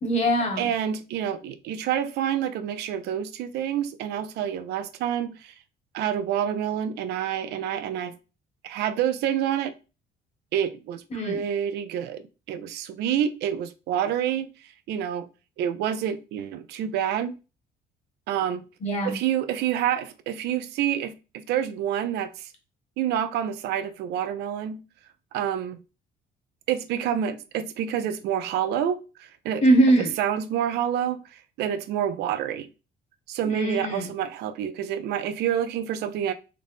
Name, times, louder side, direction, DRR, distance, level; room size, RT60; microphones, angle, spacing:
voice 1, 0.0-0.7 11.1-11.4 18.8-19.2 29.6-30.1 33.4-34.1, right 1 dB, 40° left, 1.4 m, -22 dB
voice 2, 0.6-5.5 5.9-8.2 8.6-9.7 10.5-15.3 15.6-17.4 18.3-18.6 19.0-22.5 23.0-24.8 25.3-25.8 26.7-29.6 30.2-32.7 33.3-36.3, right 9 dB, 80° right, 0.5 m, -28 dB
3.9 x 2.1 x 3.4 m
cardioid pair, 110°, 17 cm